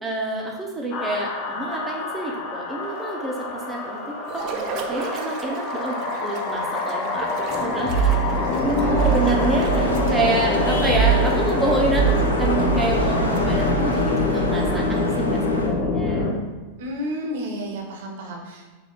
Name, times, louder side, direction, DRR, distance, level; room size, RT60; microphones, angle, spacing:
voice 1, 0.0-4.0 4.3-8.3 8.6-16.3, right 2 dB, 10° right, -1 dB, 0.8 m, -28 dB
sound 1, 0.9-16.3, equal, 35° left, 0.7 m, -24 dB
sound 2, 4.3-14.2, right 4 dB, 40° right, 0.4 m, -35 dB
Vehicle horn car horn honking / Traffic noise roadway noise, 8.3-15.7, left 1 dB, 80° left, 0.5 m, -29 dB
voice 2, 8.7-10.4 16.8-18.7, equal, 55° right, 0 dB, 0.8 m, -31 dB
3.5 x 3.2 x 3.8 m, 1.2 s
figure-of-eight pair, 90°, 0 cm